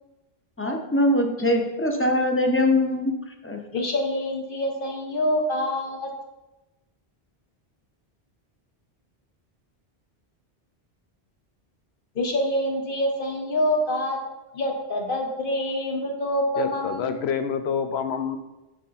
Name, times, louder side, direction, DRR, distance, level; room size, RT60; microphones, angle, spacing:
voice 1, 0.6-3.6, left 1 dB, 15° left, 3 dB, 0.5 m, -22 dB
voice 2, 3.7-6.1 12.1-14.2 14.5-17.2, left 1 dB, 60° left, 2 dB, 1.2 m, -26 dB
voice 3, 16.6-18.4, left 7 dB, 85° left, 9 dB, 0.9 m, -27 dB
6.0 x 4.9 x 4.0 m, 1.0 s
omnidirectional pair, 1.0 m